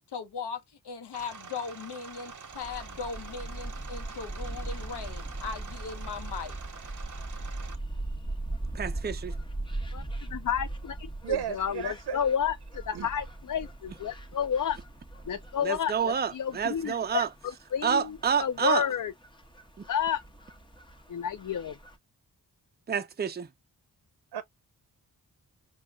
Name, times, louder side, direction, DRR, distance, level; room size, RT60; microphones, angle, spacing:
voice 1, 0.1-6.5, left 5 dB, 90° left, 1.0 m, -38 dB
sound 1, 1.1-7.8, right 5 dB, 50° right, 1.0 m, -46 dB
sound 2, 2.5-22.0, right 2 dB, 10° left, 1.1 m, -40 dB
voice 2, 8.7-9.4 15.6-17.3 17.8-18.9 19.8-19.9 22.9-23.5, right 7 dB, 25° right, 0.5 m, -28 dB
voice 3, 9.9-14.8 15.3-17.2 17.7-19.1 19.9-20.2 21.1-21.7, left 8 dB, 50° left, 0.5 m, -31 dB
voice 4, 11.2-12.2 12.9-13.1 24.3-24.4, right 9 dB, 80° right, 0.6 m, -33 dB
5.0 x 2.3 x 2.3 m
wide cardioid pair, 80°, 39 cm